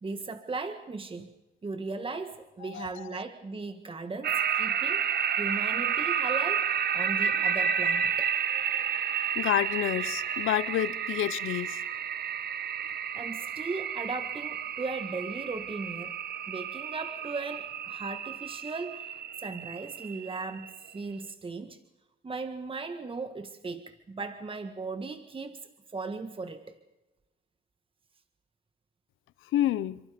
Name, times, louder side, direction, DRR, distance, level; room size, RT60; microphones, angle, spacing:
voice 1, 0.0-1.3 1.6-5.0 5.4-8.3 13.1-16.2 16.5-21.8 22.2-26.8, right 3 dB, 25° right, 1.7 m, -37 dB
sound 1, 4.2-21.0, right 8 dB, 55° right, 1.1 m, -31 dB
voice 2, 9.4-11.8 29.5-30.0, left 13 dB, 85° left, 0.9 m, -29 dB
29.0 x 24.5 x 5.2 m
cardioid pair, 90°, 20 cm